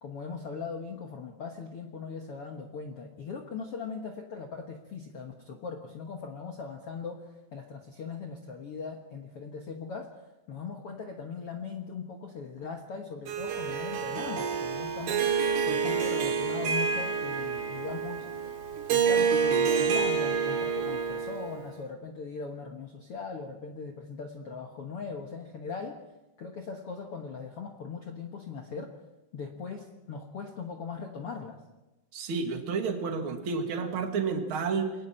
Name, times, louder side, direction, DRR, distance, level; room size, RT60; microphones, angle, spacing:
voice 1, 0.0-10.1 10.5-15.3 15.7-18.3 18.9-26.0 26.4-28.9 29.3-31.6, left 5 dB, 70° left, 3 dB, 1.4 m, -39 dB
Harp, 13.3-21.7, right 6 dB, 70° right, 3.7 m, -28 dB
voice 2, 32.1-34.9, right 5 dB, 40° right, 4 dB, 2.1 m, -30 dB
28.5 x 22.5 x 4.5 m, 1.0 s
omnidirectional pair, 4.8 m